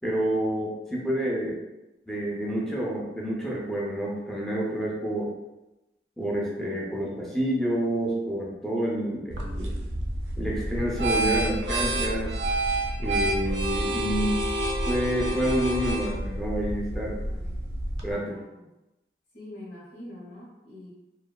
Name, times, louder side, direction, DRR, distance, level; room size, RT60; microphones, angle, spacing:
voice 1, 0.0-1.6 2.1-5.3 6.2-9.8 10.4-12.3 13.0-14.4 14.9-17.2 18.0-18.4, equal, 5° left, -4 dB, 0.4 m, -28 dB
sound 1, 9.3-18.1, right 1 dB, 85° right, 0.5 m, -28 dB
voice 2, 17.2-17.6 18.3-18.6 19.3-20.9, left 1 dB, 80° left, -8 dB, 0.9 m, -45 dB
3.1 x 2.1 x 2.2 m, 0.98 s
head